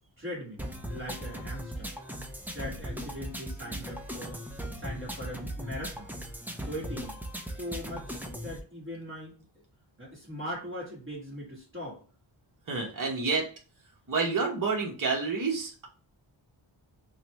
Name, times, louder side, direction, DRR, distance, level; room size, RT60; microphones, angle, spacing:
voice 1, 0.2-1.9 2.4-4.4 4.7-6.1 6.5-9.4 10.0-12.0, equal, 25° right, -5 dB, 1.4 m, -40 dB
sound 1, 0.6-8.6, equal, 5° right, 0.4 m, -38 dB
voice 2, 12.7-13.5 14.1-15.9, right 4 dB, 45° right, -1 dB, 1.0 m, -29 dB
3.9 x 2.2 x 2.9 m, 0.37 s
wide cardioid pair, 140°, 46 cm